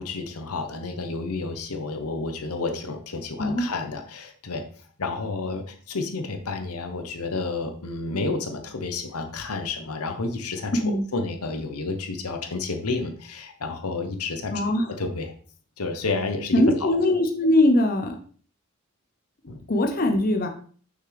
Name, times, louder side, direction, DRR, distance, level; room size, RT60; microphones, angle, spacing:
voice 1, 0.0-4.6 5.0-14.5 15.0-15.3 15.8-16.9 19.5-19.6, left 3 dB, 85° left, 6 dB, 1.0 m, -30 dB
voice 2, 14.5-14.9 16.5-18.2 19.7-20.5, left 1 dB, 40° left, 5 dB, 0.7 m, -21 dB
6.3 x 5.9 x 3.3 m, 0.44 s
head